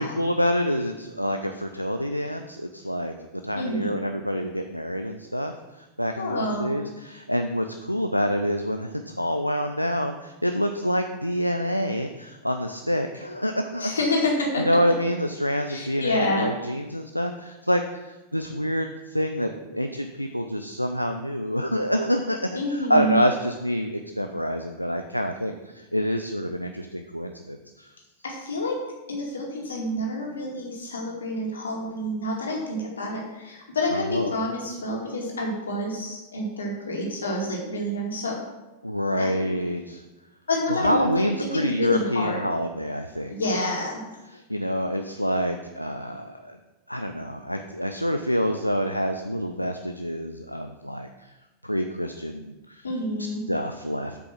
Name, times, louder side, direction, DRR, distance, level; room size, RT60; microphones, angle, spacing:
voice 1, 0.0-3.1 3.4-14.0 14.6-27.9 33.9-34.3 38.8-40.0 40.7-43.6 44.3-46.6 46.9-51.3 51.6-52.9 53.2-54.2, equal, 90° left, 6 dB, 0.5 m, -27 dB
voice 2, 3.6-4.0 6.2-6.7 13.8-14.6 15.7-16.5 22.6-23.2 28.2-28.8 29.1-38.4 39.2-39.3 40.5-42.4 43.3-44.0 52.8-53.4, left 1 dB, 70° left, -1 dB, 2.4 m, -28 dB
8.3 x 6.0 x 5.8 m, 1.1 s
figure-of-eight pair, 90°, 0 cm